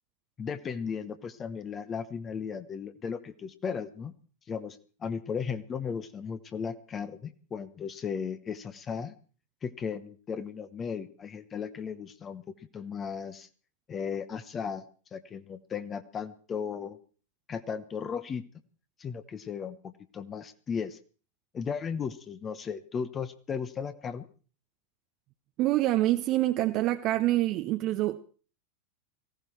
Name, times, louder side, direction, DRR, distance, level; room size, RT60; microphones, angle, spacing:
voice 1, 0.4-4.1 4.5-9.1 9.6-12.4 12.7-13.5 13.9-14.8 15.1-17.0 17.5-18.4 19.0-21.0 21.5-24.3, left 6 dB, 25° left, 1.0 m, -36 dB
voice 2, 25.6-28.2, right 15 dB, 40° right, 0.8 m, -26 dB
18.5 x 15.5 x 4.5 m
figure-of-eight pair, 90°, 0 cm